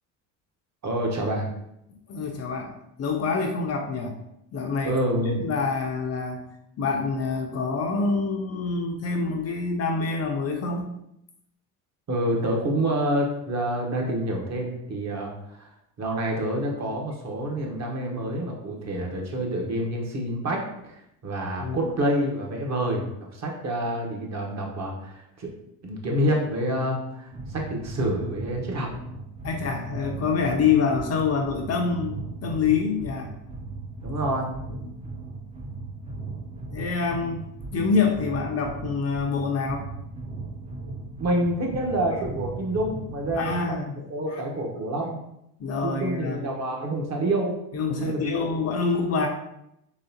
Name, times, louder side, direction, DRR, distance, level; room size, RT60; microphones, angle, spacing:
voice 1, 0.8-1.5 4.8-5.4 12.1-15.7 16.0-20.6 20.9-23.1 23.3-25.5 25.8-28.9 34.0-34.5 41.2-45.2 45.8-47.5 47.9-48.4, right 1 dB, 40° right, 0 dB, 1.1 m, -27 dB
voice 2, 1.9-4.2 4.5-5.0 5.4-6.5 6.8-10.9 21.6-21.9 29.4-33.3 34.8-35.0 36.7-37.5 37.7-39.9 43.3-44.0 44.3-44.4 45.6-46.5 47.7-49.3, left 5 dB, 35° left, 2 dB, 0.6 m, -26 dB
sound 1, 27.3-43.7, right 3 dB, 15° right, 0.5 m, -37 dB
3.9 x 3.0 x 2.8 m, 0.81 s
supercardioid pair, 90°, 42 cm